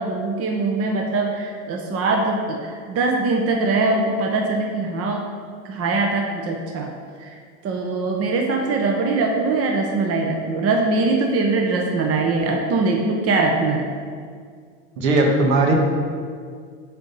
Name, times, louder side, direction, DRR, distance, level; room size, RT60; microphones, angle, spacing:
voice 1, 0.0-5.2 5.6-6.9 7.2-7.3 7.6-13.9, right 3 dB, 35° right, 2 dB, 1.0 m, -22 dB
voice 2, 15.0-15.7, right 2 dB, 70° right, 1 dB, 1.7 m, -17 dB
8.9 x 4.0 x 5.4 m, 2.1 s
supercardioid pair, 110°, 41 cm